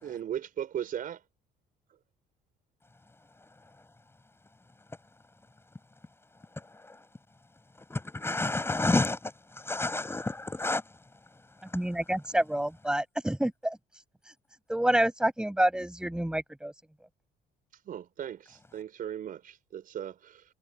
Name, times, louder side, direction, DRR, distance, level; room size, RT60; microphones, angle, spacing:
voice 1, 0.0-1.2 17.9-20.4, right 10 dB, 55° right, 5.1 m, -37 dB
voice 2, 7.9-10.8, left 2 dB, 15° left, 5.7 m, -30 dB
voice 3, 11.7-13.8 14.7-16.7, right 1 dB, 5° right, 7.6 m, -28 dB
cardioid pair, 110°, 17 cm